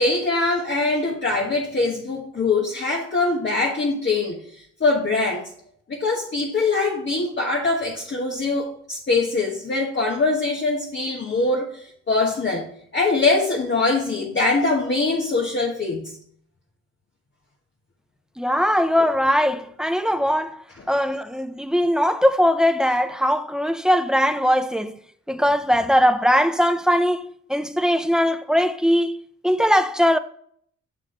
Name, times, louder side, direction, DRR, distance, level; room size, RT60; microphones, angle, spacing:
voice 1, 0.0-4.4 4.8-5.5 5.9-12.7 12.9-16.1, left 3 dB, 40° left, 1.3 m, -23 dB
voice 2, 18.4-24.9 25.3-30.2, equal, ahead, 0.5 m, -20 dB
6.4 x 5.9 x 3.7 m
cardioid pair, 70°, 29 cm